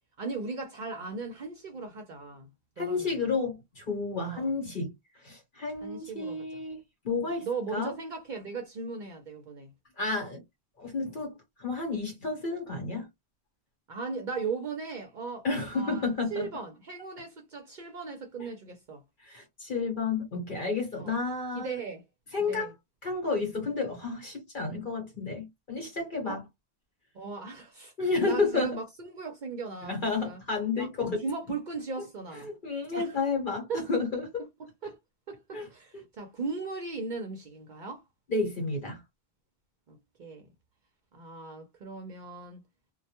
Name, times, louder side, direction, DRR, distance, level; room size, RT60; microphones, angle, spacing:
voice 1, 0.2-2.5 2.8-3.1 4.2-4.5 5.8-6.6 7.4-9.7 13.9-15.5 15.7-16.1 16.3-19.0 21.0-21.2 21.5-22.0 22.5-22.7 26.2-26.4 27.1-27.9 28.2-30.4 30.8-30.9 31.2-32.5 32.9-33.2 33.7-33.9 34.6-35.0 35.3-38.0 39.9-40.5 41.1-42.6, right 4 dB, 55° right, 0.6 m, -38 dB
voice 2, 2.8-4.9 5.2-6.8 7.0-7.9 10.0-10.4 10.8-13.1 15.4-16.4 19.2-21.8 22.3-22.7 23.0-26.4 28.0-28.8 29.8-31.2 32.4-34.4 35.5-35.7 35.9-36.0 38.3-39.0, left 3 dB, 55° left, 1.0 m, -31 dB
2.2 x 2.1 x 2.8 m
omnidirectional pair, 1.1 m